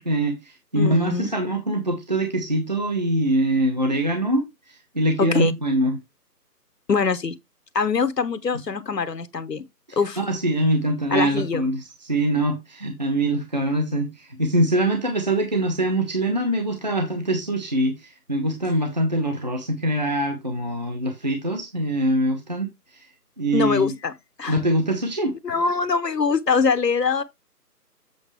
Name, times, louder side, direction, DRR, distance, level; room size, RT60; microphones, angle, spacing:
voice 1, 0.0-6.0 9.9-23.1 23.4-23.9 24.5-25.3, right 1 dB, 25° right, 0.8 m, -23 dB
voice 2, 0.7-1.3 5.2-5.5 6.9-7.4 7.7-9.6 9.9-10.2 11.1-11.6 23.5-24.1 24.4-24.6 25.4-27.2, left 5 dB, 75° left, 0.9 m, -23 dB
7.9 x 6.3 x 3.2 m
figure-of-eight pair, 155°, 49 cm